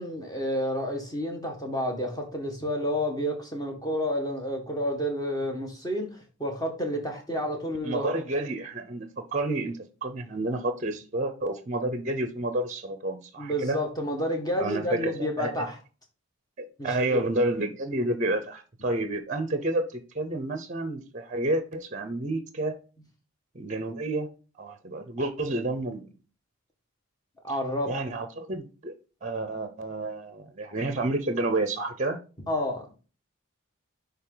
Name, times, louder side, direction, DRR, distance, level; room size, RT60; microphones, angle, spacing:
voice 1, 0.0-8.1 13.4-15.8 16.8-17.2 27.4-27.9 32.4-32.9, equal, 15° left, 1.5 m, -30 dB
voice 2, 7.8-13.8 14.6-15.1 15.4-15.5 16.6-22.8 23.5-24.3 24.6-26.0 27.9-28.9 29.2-32.2, right 2 dB, 35° right, 0.7 m, -30 dB
10.5 x 3.5 x 3.8 m
head